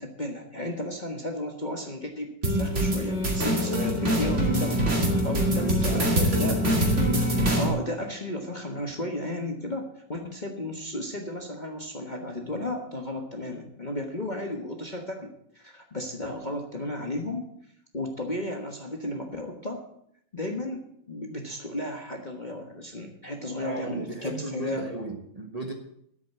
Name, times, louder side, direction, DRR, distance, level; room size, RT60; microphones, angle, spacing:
voice 1, 0.0-4.8 5.2-6.6 7.5-15.3 15.5-17.5 17.9-19.8 20.3-24.9, left 1 dB, 30° left, 2 dB, 1.2 m, -34 dB
sound 1, 2.4-7.7, equal, 40° right, 2.6 m, -24 dB
voice 2, 3.6-4.4 5.5-6.9 23.6-25.7, right 2 dB, 20° right, 3 dB, 1.3 m, -35 dB
10.5 x 8.3 x 8.1 m, 0.71 s
omnidirectional pair, 2.0 m